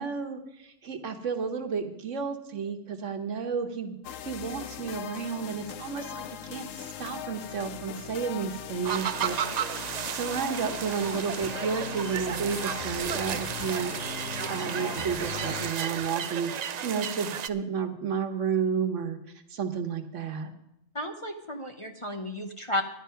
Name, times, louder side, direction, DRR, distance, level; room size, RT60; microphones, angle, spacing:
voice 1, 0.0-13.9 14.5-19.2 19.5-20.5, right 6 dB, 70° right, 7 dB, 1.4 m, -32 dB
sound 1, 4.0-15.7, left 9 dB, 80° left, 1.0 m, -39 dB
sound 2, 8.8-17.5, right 8 dB, 90° right, 0.3 m, -33 dB
voice 2, 20.9-22.8, left 1 dB, 30° left, 3 dB, 0.7 m, -33 dB
11.0 x 10.5 x 5.6 m, 0.85 s
omnidirectional pair, 1.3 m